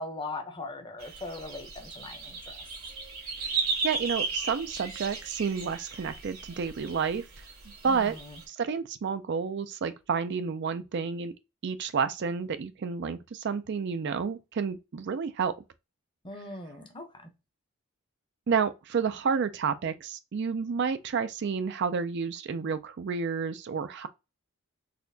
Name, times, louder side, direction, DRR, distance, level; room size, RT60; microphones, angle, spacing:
voice 1, 0.0-2.6 7.8-8.4 16.2-17.3, left 2 dB, 20° left, 0.7 m, -40 dB
sound 1, 1.0-8.4, right 4 dB, 70° right, 1.7 m, -36 dB
voice 2, 3.8-7.3 7.8-8.2 8.5-11.3 11.6-15.5 18.5-24.1, right 6 dB, 50° right, 0.4 m, -30 dB
4.1 x 2.8 x 2.6 m
head